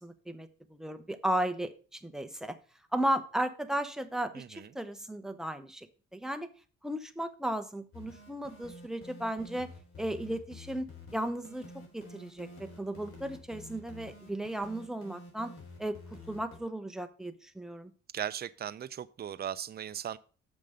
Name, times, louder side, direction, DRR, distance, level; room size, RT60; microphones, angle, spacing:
voice 1, 0.0-2.6 2.9-5.9 6.1-6.5 6.8-9.7 10.0-10.9 11.1-11.6 11.9-15.5 15.8-17.9, right 1 dB, ahead, 0.9 m, -35 dB
voice 2, 4.3-4.7 18.1-20.2, right 9 dB, 35° right, 0.5 m, -38 dB
sound 1, 7.9-16.6, left 2 dB, 45° left, 3.8 m, -50 dB
6.8 x 5.3 x 6.5 m
cardioid pair, 90°, 30 cm